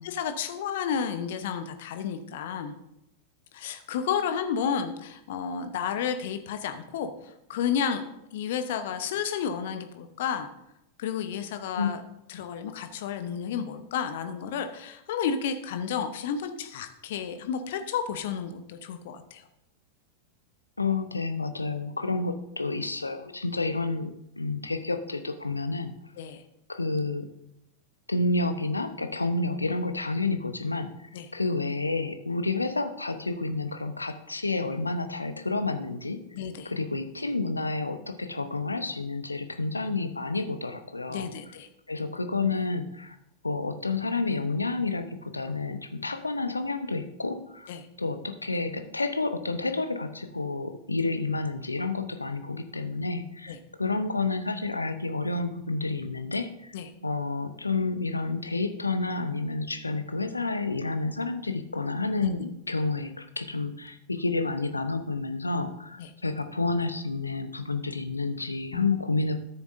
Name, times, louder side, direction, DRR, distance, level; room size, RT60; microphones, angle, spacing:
voice 1, 0.0-2.7 3.5-7.1 7.5-8.0 8.3-10.5 11.0-12.0 12.3-19.4 26.2-26.4 31.1-31.3 36.3-36.7 41.1-41.7 47.7-47.9 53.5-53.6 56.7-56.9 62.2-62.4 66.0-66.1 68.7-68.9, left 7 dB, 55° left, 8 dB, 0.9 m, -31 dB
voice 2, 20.8-24.1 24.4-25.9 26.7-27.2 28.1-36.2 36.6-41.3 41.9-43.2 43.4-47.7 48.0-56.8 57.0-69.4, left 3 dB, 80° left, 9 dB, 0.7 m, -30 dB
13.0 x 7.0 x 2.6 m, 0.85 s
figure-of-eight pair, 90°, 0 cm